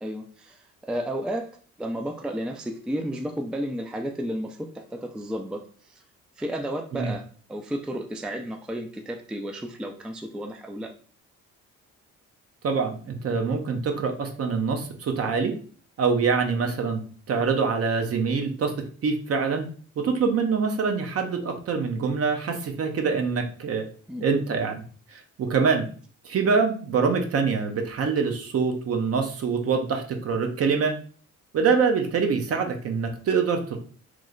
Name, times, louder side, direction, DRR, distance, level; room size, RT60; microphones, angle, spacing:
voice 1, 0.0-1.5 1.8-6.0 6.4-10.9 24.1-24.2, equal, 5° right, 4 dB, 0.3 m, -32 dB
voice 2, 12.6-15.5 16.0-17.0 17.3-18.7 19.0-19.7 20.0-23.8 24.2-24.8 25.1-25.9 26.2-30.9 31.5-33.8, right 5 dB, 50° right, 5 dB, 0.7 m, -25 dB
3.1 x 2.1 x 3.7 m, 0.42 s
cardioid pair, 90°, 30 cm